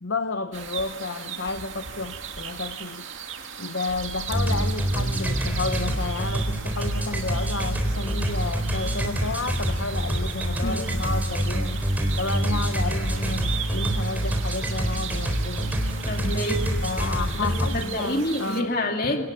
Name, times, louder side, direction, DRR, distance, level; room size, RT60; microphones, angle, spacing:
voice 1, 0.0-3.1 3.6-11.8 12.2-15.8 16.8-18.7, left 3 dB, 55° left, 0.8 m, -31 dB
sound 1, 0.5-18.6, right 7 dB, 60° right, 2.4 m, -37 dB
sound 2, 4.3-17.9, equal, 10° right, 3.9 m, -26 dB
voice 2, 16.1-16.8 17.3-19.3, left 1 dB, 40° left, 2.5 m, -27 dB
29.0 x 18.5 x 8.4 m
head